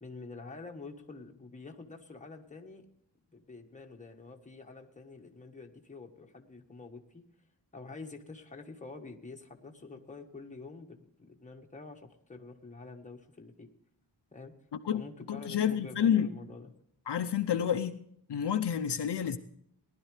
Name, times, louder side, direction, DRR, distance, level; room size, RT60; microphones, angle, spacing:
voice 1, 0.0-2.9 3.3-7.2 7.7-13.7 14.3-14.5 14.9-16.7, left 3 dB, 15° left, 1.4 m, -47 dB
voice 2, 15.3-16.3 17.1-18.0 18.3-19.4, left 9 dB, 65° left, 0.8 m, -29 dB
19.0 x 12.0 x 3.3 m
wide cardioid pair, 150°, 44 cm